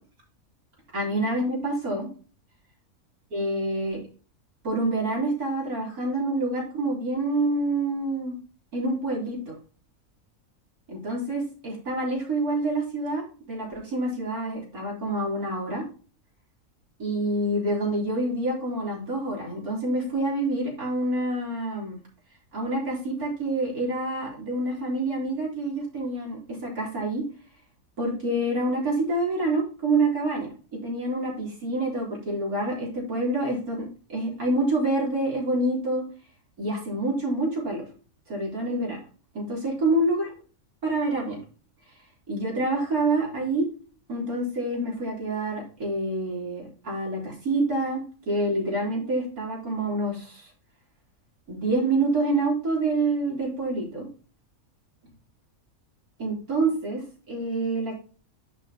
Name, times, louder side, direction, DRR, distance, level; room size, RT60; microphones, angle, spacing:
voice 1, 0.9-2.1 3.3-4.0 4.6-8.4 8.7-9.5 10.9-15.9 17.0-22.0 22.5-27.3 28.0-36.0 36.6-37.8 38.3-39.0 39.3-40.3 40.8-41.4 42.3-43.7 44.1-50.5 51.5-54.1 56.2-58.0, right 2 dB, 85° right, -3 dB, 4.1 m, -27 dB
10.5 x 6.0 x 2.9 m, 0.38 s
omnidirectional pair, 1.5 m